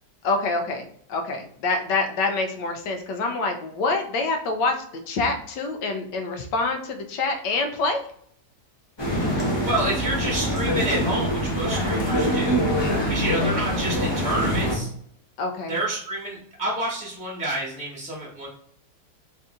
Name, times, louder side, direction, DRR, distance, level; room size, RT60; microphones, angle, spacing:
voice 1, 0.2-4.7 5.1-8.0 15.4-15.8, left 3 dB, 90° left, 5 dB, 1.4 m, -26 dB
sound 1, 9.0-14.7, equal, 25° left, 0.6 m, -24 dB
voice 2, 9.6-12.6 13.1-14.9 15.7-18.5, right 1 dB, 5° right, -4 dB, 0.8 m, -29 dB
4.0 x 2.6 x 3.6 m, 0.64 s
omnidirectional pair, 1.8 m